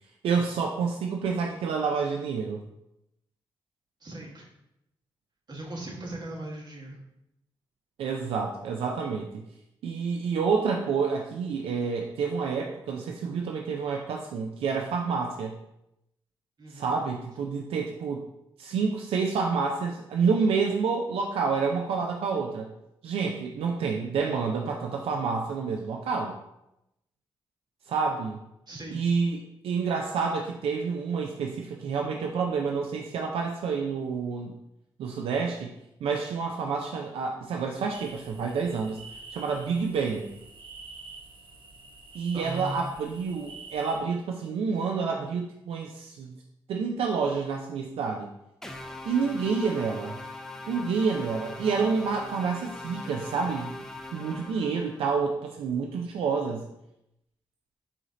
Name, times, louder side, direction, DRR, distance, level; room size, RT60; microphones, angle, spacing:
voice 1, 0.2-2.6 8.0-9.4 9.8-15.6 16.7-18.2 18.6-22.7 23.0-26.4 27.9-28.4 28.9-34.6 35.0-35.7 36.0-39.0 39.3-40.3 42.1-46.4 46.7-48.3 49.1-50.2 50.7-56.7, right 5 dB, 85° right, 2 dB, 0.4 m, -28 dB
voice 2, 4.0-4.5 5.5-7.0 16.6-17.0 28.7-29.0 42.3-42.7, right 1 dB, 45° right, -2 dB, 1.4 m, -38 dB
sound 1, 37.9-44.0, right 3 dB, 65° right, 0.8 m, -47 dB
sound 2, 48.6-55.1, left 2 dB, 5° left, 0.5 m, -41 dB
4.8 x 2.8 x 3.8 m, 0.84 s
cardioid pair, 60°, 9 cm